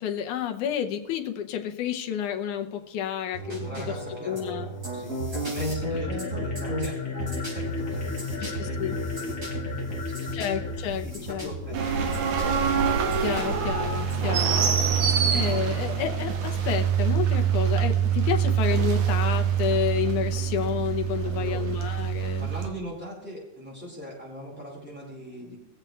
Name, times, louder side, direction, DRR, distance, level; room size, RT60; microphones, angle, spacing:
voice 1, 0.0-3.7 4.3-4.7 8.4-9.0 10.3-11.5 13.2-14.7 14.9-22.5, left 9 dB, 85° left, 5 dB, 2.5 m, -30 dB
sound 1, 3.3-15.9, right 1 dB, 25° right, 4.4 m, -35 dB
voice 2, 3.6-10.4 11.0-12.3 21.2-21.7 22.4-25.6, equal, 5° right, -5 dB, 4.4 m, -41 dB
sound 2, 5.6-11.8, left 5 dB, 30° left, 1.5 m, -35 dB
sound 3, 11.7-22.7, right 8 dB, 75° right, 2.6 m, -25 dB
22.5 x 7.8 x 3.3 m, 0.97 s
omnidirectional pair, 3.4 m